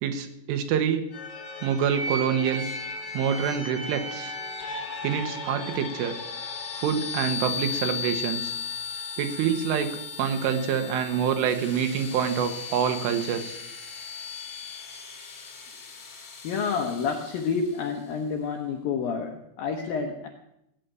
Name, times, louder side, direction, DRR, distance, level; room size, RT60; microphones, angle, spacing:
voice 1, 0.0-1.0 1.6-2.7 3.1-4.4 5.0-6.1 6.8-8.5 9.2-9.9 10.2-13.6, right 8 dB, 80° right, 7 dB, 3.8 m, -26 dB
sound 1, 1.1-17.8, left 4 dB, 35° left, 3.0 m, -36 dB
voice 2, 16.2-20.3, left 5 dB, 75° left, 3 dB, 2.1 m, -29 dB
17.5 x 8.4 x 9.2 m, 0.80 s
omnidirectional pair, 5.8 m